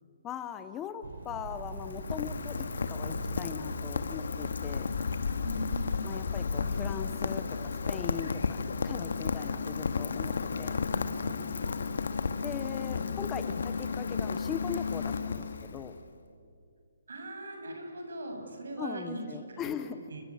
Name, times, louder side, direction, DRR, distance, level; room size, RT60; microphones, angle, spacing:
voice 1, 0.2-4.9 6.0-10.8 12.4-16.0 18.8-20.0, left 8 dB, 10° left, 11 dB, 0.6 m, -40 dB
sound 1, 1.0-6.3, right 3 dB, 50° right, 3.3 m, -44 dB
Rain, 1.1-16.0, left 5 dB, 60° left, 1.6 m, -33 dB
voice 2, 5.4-6.1 6.6-6.8 10.9-11.4 17.1-19.6 20.1-20.2, right 1 dB, 70° right, 3 dB, 7.3 m, -40 dB
29.5 x 23.0 x 8.6 m, 2.4 s
hypercardioid pair, 180°, 0 cm